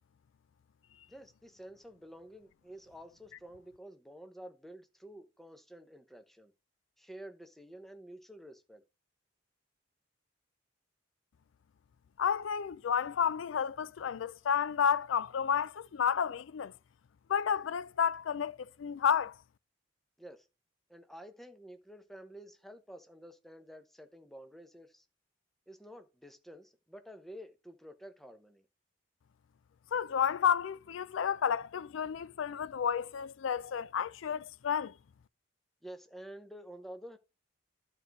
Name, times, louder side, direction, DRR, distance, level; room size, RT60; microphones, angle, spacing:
voice 1, 1.1-6.5 7.0-8.8 20.2-20.5 20.9-25.0 25.7-28.7 35.8-37.2, equal, ahead, 0.8 m, -50 dB
voice 2, 12.2-16.7 17.3-19.3 29.9-34.9, left 7 dB, 80° left, 0.4 m, -31 dB
11.5 x 4.6 x 3.9 m
head